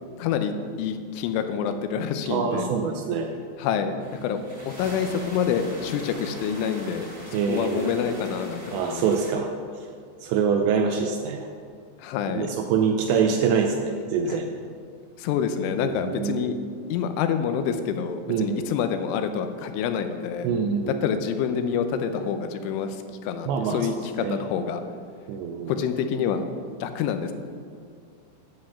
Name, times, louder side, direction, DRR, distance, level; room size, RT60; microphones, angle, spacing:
voice 1, 0.2-2.7 3.6-7.1 7.5-9.1 12.0-12.5 14.3-14.4 15.2-16.6 16.9-20.5 20.9-24.8 25.7-26.5 26.8-27.3, left 7 dB, 85° left, 8 dB, 3.2 m, -27 dB
voice 2, 2.3-3.3 7.3-7.9 8.7-9.5 10.2-11.5 12.3-14.5 15.8-16.6 18.3-18.7 20.4-21.0 23.5-23.9 24.2-24.4 25.3-25.7, right 6 dB, 85° right, 3 dB, 2.7 m, -25 dB
sound 1, 4.0-9.3, right 1 dB, 30° right, 1.3 m, -41 dB
10.5 x 7.7 x 7.1 m, 2.1 s
omnidirectional pair, 5.5 m